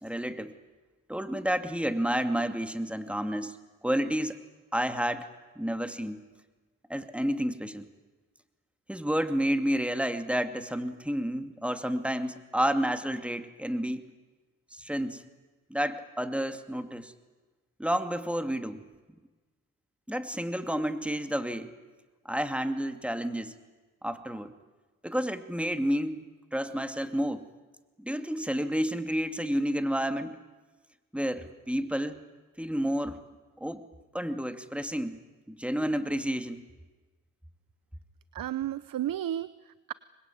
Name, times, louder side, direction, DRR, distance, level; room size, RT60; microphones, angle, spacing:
voice 1, 0.0-0.5 1.1-3.6 3.8-4.4 4.7-5.3 5.6-6.2 6.9-7.9 8.9-14.0 14.7-15.3 15.7-17.1 17.8-18.9 20.1-21.7 22.2-23.5 24.0-24.5 25.0-26.2 26.5-27.4 28.0-30.4 31.1-32.2 32.6-33.2 33.6-33.8 34.1-35.2 35.5-36.6, equal, 5° right, 8 dB, 2.5 m, -30 dB
voice 2, 38.3-39.9, right 12 dB, 70° right, 17 dB, 0.7 m, -33 dB
25.5 x 21.5 x 9.4 m, 1.3 s
supercardioid pair, 55°, 35 cm